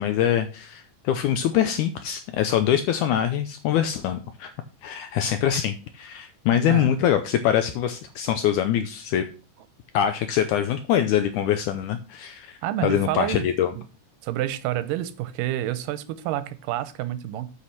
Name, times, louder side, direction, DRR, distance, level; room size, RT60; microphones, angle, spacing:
voice 1, 0.0-4.5 4.8-9.2 9.9-13.7, left 10 dB, 75° left, 2.0 m, -24 dB
voice 2, 12.6-13.5 14.2-17.5, right 13 dB, 90° right, 2.4 m, -28 dB
8.4 x 5.0 x 5.8 m
omnidirectional pair, 3.8 m